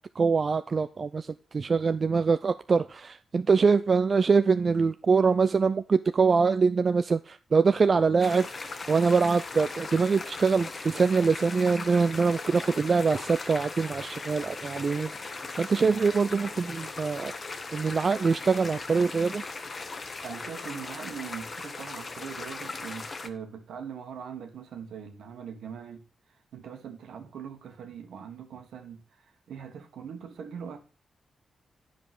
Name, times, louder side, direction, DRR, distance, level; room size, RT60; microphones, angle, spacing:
voice 1, 0.2-15.1 15.6-19.4, right 5 dB, 50° right, 0.5 m, -24 dB
sound 1, 8.2-23.3, left 3 dB, 45° left, 1.3 m, -38 dB
voice 2, 20.2-26.0 26.5-30.8, right 7 dB, 80° right, 1.6 m, -41 dB
9.9 x 5.3 x 6.1 m
supercardioid pair, 50°, 0 cm